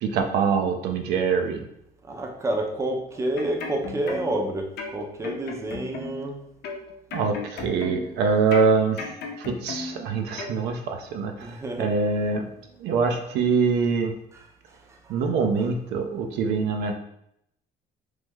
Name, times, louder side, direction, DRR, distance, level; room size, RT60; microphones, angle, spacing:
voice 1, 0.0-1.6 7.1-9.0 9.4-11.3 11.8-12.5 12.8-14.1 15.1-17.0, right 5 dB, 85° right, 4 dB, 0.5 m, -24 dB
voice 2, 2.0-6.5 11.4-12.0 14.3-15.2 15.6-15.7, right 1 dB, 15° right, 2 dB, 0.5 m, -30 dB
sound 1, 3.1-4.4 4.8-6.3 6.6-8.2 8.5-10.0 10.4-10.6, left 4 dB, 75° left, 0.6 m, -35 dB
3.1 x 2.0 x 3.5 m, 0.76 s
cardioid pair, 110°, 17 cm